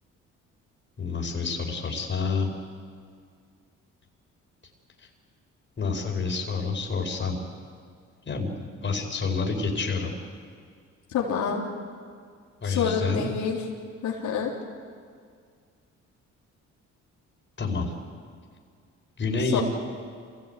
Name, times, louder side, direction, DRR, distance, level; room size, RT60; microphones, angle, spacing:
voice 1, 1.0-2.5 5.8-7.4 8.2-10.1 12.6-13.3 17.6-17.9 19.2-19.6, left 4 dB, 40° left, 1 dB, 5.0 m, -28 dB
voice 2, 11.1-11.6 12.6-13.6 14.0-14.5 19.5-19.6, left 6 dB, 75° left, -3 dB, 3.7 m, -27 dB
27.0 x 17.0 x 9.2 m, 2.1 s
cardioid pair, 90°, 30 cm